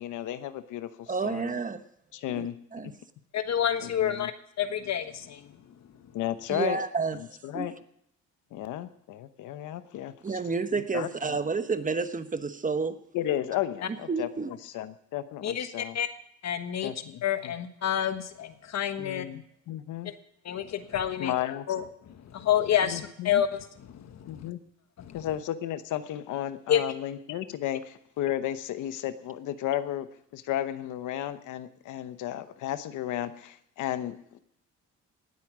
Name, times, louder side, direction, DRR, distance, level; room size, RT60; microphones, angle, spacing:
voice 1, 0.0-0.9 1.2-1.6 2.1-2.6 2.8-2.9 3.8-4.3 6.1-6.8 7.4-7.7 8.5-10.1 10.9-11.1 13.1-16.0 16.8-17.5 19.0-20.1 21.2-21.7 22.8-23.4 24.3-24.6 25.1-30.1 30.3-34.2, left 12 dB, 85° left, 12 dB, 0.9 m, -33 dB
voice 2, 1.1-1.8 2.3-2.9 6.5-7.7 10.2-13.0 14.1-14.5, right 4 dB, 25° right, 10 dB, 1.0 m, -30 dB
voice 3, 3.3-5.6 15.4-16.1 16.4-16.9 17.2-19.3 20.4-21.3 21.7-24.5 25.0-25.2 26.7-26.8, left 9 dB, 60° left, 9 dB, 1.4 m, -29 dB
18.5 x 8.5 x 6.1 m, 0.70 s
cardioid pair, 90°, 30 cm